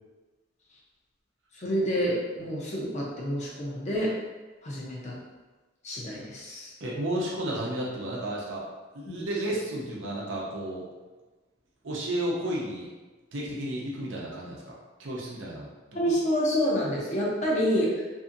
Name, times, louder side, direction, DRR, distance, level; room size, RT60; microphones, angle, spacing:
voice 1, 1.5-4.2 4.6-5.1 5.8-6.7 9.1-9.2 15.9-18.0, equal, 35° left, -3 dB, 0.6 m, -28 dB
voice 2, 6.8-8.6 8.9-10.9 11.8-12.9 13.3-14.7 15.0-16.1, right 1 dB, 70° right, -4 dB, 0.7 m, -32 dB
2.7 x 2.7 x 2.5 m, 1.2 s
head